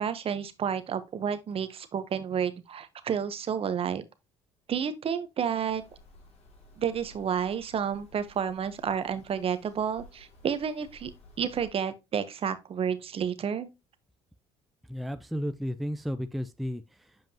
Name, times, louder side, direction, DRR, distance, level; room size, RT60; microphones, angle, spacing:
voice 1, 0.0-4.0 4.7-5.8 6.8-11.1 11.4-13.7, right 7 dB, 45° right, 1.0 m, -30 dB
field recording in Bursa, 5.7-11.7, left 2 dB, 50° left, 2.5 m, -55 dB
voice 2, 14.8-17.3, equal, ahead, 0.5 m, -34 dB
7.5 x 5.2 x 2.9 m
supercardioid pair, 80°, 13 cm